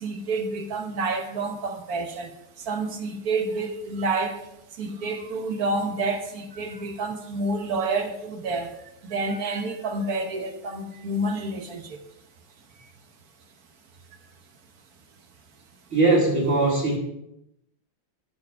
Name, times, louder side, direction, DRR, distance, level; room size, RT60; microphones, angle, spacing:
voice 1, 0.0-2.3 2.7-4.4 4.8-8.7 9.1-12.0, right 3 dB, 55° right, 1.3 m, -29 dB
voice 2, 15.9-17.0, right 2 dB, 35° right, 2.3 m, -20 dB
13.0 x 4.6 x 4.7 m
omnidirectional pair, 2.2 m